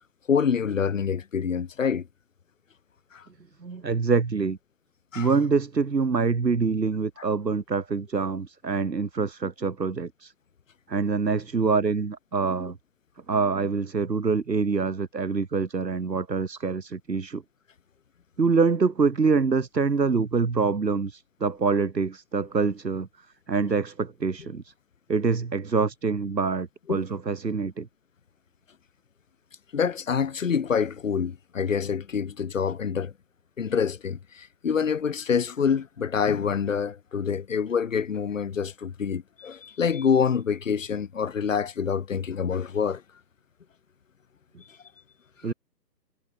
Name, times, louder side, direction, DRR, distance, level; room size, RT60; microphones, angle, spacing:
voice 1, 0.3-2.0 3.1-3.2 5.1-5.3 26.9-27.0 29.7-33.1 33.6-43.0, left 6 dB, 50° left, 3.8 m, -26 dB
voice 2, 3.6-4.6 5.2-10.3 10.9-12.8 13.3-17.4 18.4-23.1 23.5-24.7 25.1-27.9 45.4-45.5, right 4 dB, 80° right, 2.2 m, -25 dB
figure-of-eight pair, 150°, 50 cm